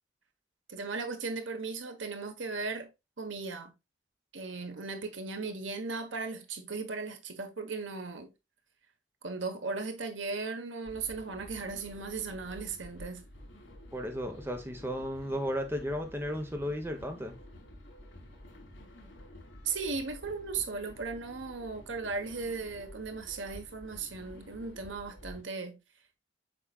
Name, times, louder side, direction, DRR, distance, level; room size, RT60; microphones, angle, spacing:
voice 1, 0.7-2.9 3.2-3.7 4.3-8.3 9.2-13.2 19.6-25.8, right 4 dB, 80° right, 1.3 m, -37 dB
sound 1, 10.8-25.4, left 1 dB, 80° left, 3.2 m, -51 dB
voice 2, 13.9-17.3, equal, 10° right, 1.2 m, -34 dB
7.4 x 5.5 x 2.4 m
head